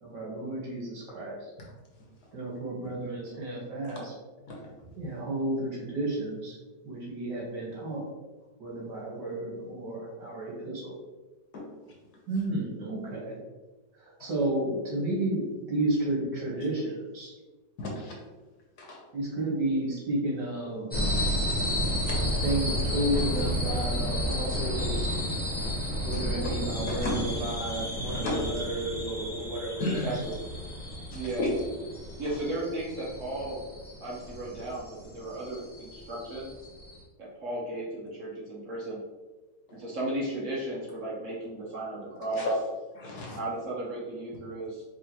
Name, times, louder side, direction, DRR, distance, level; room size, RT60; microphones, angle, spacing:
voice 1, 0.0-1.4 2.3-4.1 4.9-6.6 6.8-8.0 8.6-10.9 12.3-13.4 14.0-17.3 19.1-20.9 22.4-25.2 26.0-30.1, right 1 dB, 75° right, -4 dB, 2.0 m, -32 dB
voice 2, 17.8-18.1 18.8-19.0 21.1-21.3 21.8-22.2 27.0-27.2 28.1-28.5 29.8-30.1 31.4-31.5 42.4-43.4, left 2 dB, 65° left, -2 dB, 1.4 m, -33 dB
sound 1, 20.9-37.0, equal, 10° left, 0.4 m, -32 dB
voice 3, 29.9-30.4 31.1-31.6 32.2-33.6 34.0-36.5 37.2-39.0 39.7-42.7 43.3-44.8, right 1 dB, 55° right, -5 dB, 1.0 m, -35 dB
4.8 x 3.0 x 2.9 m, 1.2 s
omnidirectional pair, 1.9 m